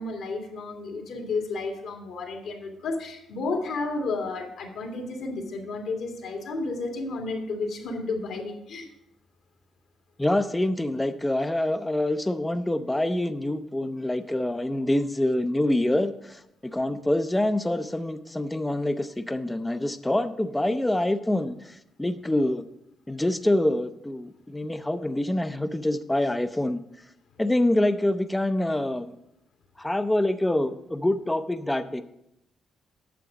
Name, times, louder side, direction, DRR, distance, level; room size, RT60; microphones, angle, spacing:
voice 1, 0.0-8.9, left 3 dB, 75° left, 2 dB, 2.0 m, -32 dB
voice 2, 10.2-22.6 23.1-26.8 27.4-29.2 29.8-32.0, left 1 dB, 10° left, 9 dB, 0.5 m, -26 dB
9.3 x 6.8 x 4.9 m, 0.79 s
cardioid pair, 90°, 0 cm